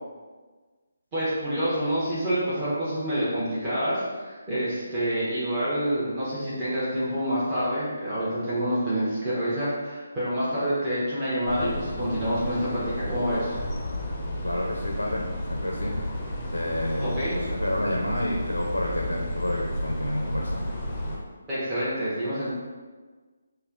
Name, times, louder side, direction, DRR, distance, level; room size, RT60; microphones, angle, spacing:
voice 1, 1.1-13.6 17.0-17.4 21.5-22.5, equal, 20° right, -11 dB, 0.9 m, -27 dB
sound 1, 11.5-21.2, left 1 dB, 15° left, 0.6 m, -32 dB
voice 2, 14.4-15.9 16.5-20.7, left 1 dB, 80° left, -1 dB, 0.5 m, -29 dB
5.4 x 2.2 x 2.5 m, 1.4 s
figure-of-eight pair, 145°, 0 cm